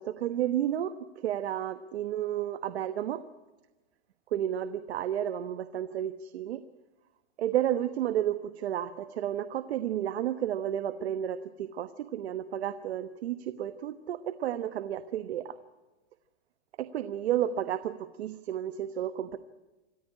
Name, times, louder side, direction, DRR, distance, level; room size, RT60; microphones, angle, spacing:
voice 1, 0.0-3.2 4.3-6.6 7.4-15.5 16.8-19.4, right 11 dB, 65° right, 12 dB, 1.1 m, -32 dB
27.0 x 14.5 x 9.9 m, 1.1 s
supercardioid pair, 170°, 35 cm